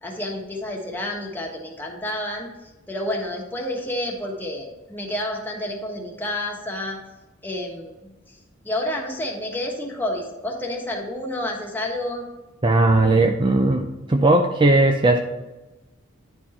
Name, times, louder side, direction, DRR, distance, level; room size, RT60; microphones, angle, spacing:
voice 1, 0.0-2.5 2.9-7.0 7.4-8.1 8.6-12.2, left 1 dB, 10° left, -1 dB, 1.4 m, -29 dB
voice 2, 12.6-15.2, right 2 dB, 25° right, 4 dB, 0.5 m, -18 dB
10.0 x 4.5 x 4.3 m, 1.1 s
head